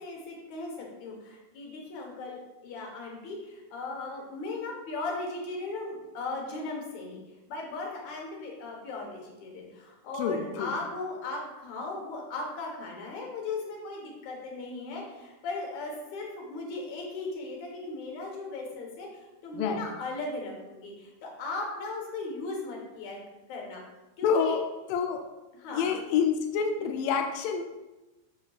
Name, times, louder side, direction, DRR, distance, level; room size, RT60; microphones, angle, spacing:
voice 1, 0.0-7.2 7.5-19.1 19.4-23.2 23.5-23.8 24.2-24.6 25.5-26.0, left 3 dB, 60° left, 0 dB, 2.1 m, -37 dB
voice 2, 10.1-10.7 19.5-19.8 24.2-25.3 25.7-27.6, left 6 dB, 90° left, 4 dB, 1.9 m, -28 dB
7.5 x 6.9 x 2.4 m, 1.1 s
omnidirectional pair, 4.7 m